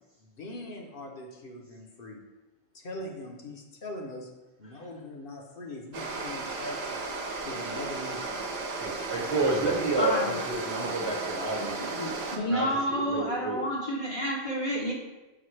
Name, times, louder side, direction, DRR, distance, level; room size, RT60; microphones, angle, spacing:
voice 1, 0.2-2.2 2.7-4.3 4.6-7.1 7.4-8.4, left 1 dB, 60° left, 1 dB, 0.9 m, -41 dB
sound 1, 5.9-12.4, right 3 dB, 70° right, 1.0 m, -35 dB
voice 2, 8.8-11.8 12.4-13.6, right 2 dB, 30° right, 0 dB, 1.0 m, -30 dB
voice 3, 10.0-10.4 11.8-14.9, equal, 40° left, -4 dB, 0.6 m, -30 dB
5.9 x 5.2 x 3.2 m, 1.1 s
omnidirectional pair, 1.1 m